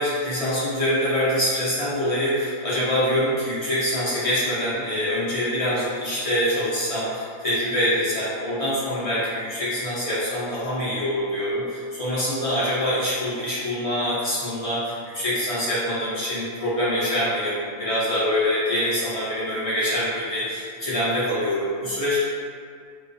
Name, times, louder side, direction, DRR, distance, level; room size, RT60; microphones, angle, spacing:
voice 1, 0.0-22.2, equal, 65° left, -10 dB, 0.3 m, -25 dB
2.3 x 2.3 x 2.5 m, 2.2 s
omnidirectional pair, 1.4 m